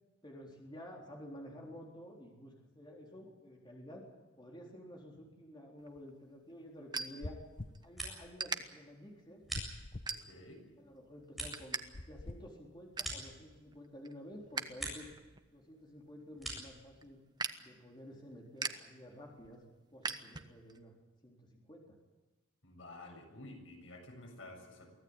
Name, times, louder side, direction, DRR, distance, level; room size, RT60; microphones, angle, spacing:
voice 1, 0.2-4.1 4.4-7.4 7.8-9.4 10.4-10.5 10.8-11.8 12.1-15.1 15.5-17.2 17.6-19.6 19.9-20.9 21.2-22.0, equal, 25° left, -1 dB, 4.0 m, -51 dB
sound 1, 5.8-7.9 8.3-8.6 9.2-9.4 10.0-10.6 11.0-11.8 12.1-12.2 12.6-13.2 13.7-14.8 15.1-20.8, right 4 dB, 20° right, 1.2 m, -42 dB
sound 2, 7.2-7.8 9.5-10.1 11.9-12.4, left 2 dB, 40° left, 0.9 m, -44 dB
sound 3, 7.6-8.5 8.8-10.2 10.7-13.9 14.3-15.2 15.5-16.8, right 1 dB, ahead, 7.7 m, -46 dB
voice 2, 10.1-10.6 22.6-25.0, left 2 dB, 85° left, 2 dB, 7.4 m, -51 dB
24.0 x 16.5 x 8.9 m, 1.1 s
head